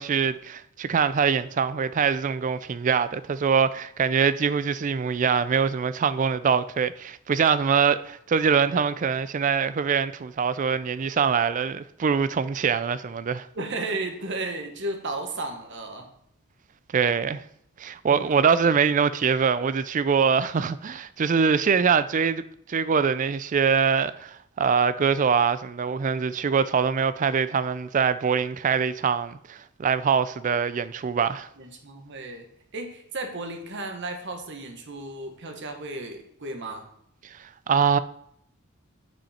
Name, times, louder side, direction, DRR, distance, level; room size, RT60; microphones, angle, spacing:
voice 1, 0.0-13.5 16.9-17.4 17.8-22.4 22.7-31.5 37.7-38.0, right 6 dB, 35° right, 0.3 m, -23 dB
voice 2, 13.5-16.1 18.0-18.4 31.6-32.4 32.7-36.9, right 2 dB, 55° right, 1.2 m, -34 dB
9.0 x 5.3 x 4.2 m
head